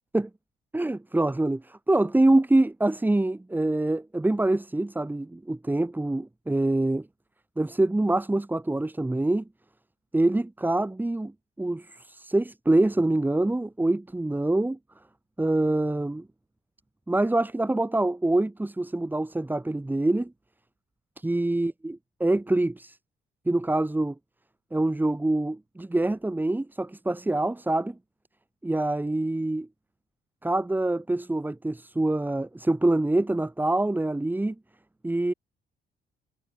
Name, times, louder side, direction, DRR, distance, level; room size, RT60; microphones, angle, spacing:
voice 1, 0.7-7.1 7.6-9.4 10.1-11.3 11.6-14.8 15.4-16.3 17.1-20.3 21.2-23.0 23.5-24.1 24.7-28.0 28.6-29.7 30.4-34.5 35.0-35.3, right 2 dB, 10° right, 0.9 m, -25 dB
cardioid pair, 90°, 20 cm